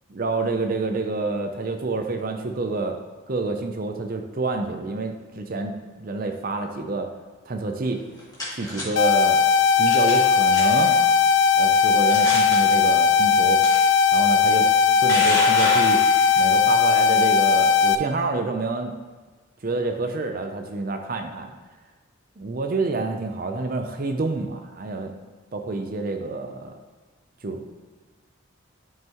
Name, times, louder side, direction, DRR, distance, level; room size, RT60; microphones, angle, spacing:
voice 1, 0.1-3.0 3.3-7.1 7.5-8.0 8.5-11.0 11.6-13.6 14.1-16.0 16.4-18.9 19.6-21.5 22.4-25.1 25.5-26.7 27.4-27.7, right 3 dB, 45° right, 5 dB, 0.5 m, -28 dB
sound 1, 7.9-8.8 9.9-10.2 10.5-10.9 11.5-11.6 12.1-12.6 13.6-13.8 14.7-16.4, left 1 dB, 15° left, 1.9 m, -28 dB
sound 2, 9.0-18.0, left 6 dB, 60° left, 0.4 m, -18 dB
10.5 x 5.6 x 3.0 m, 1.4 s
head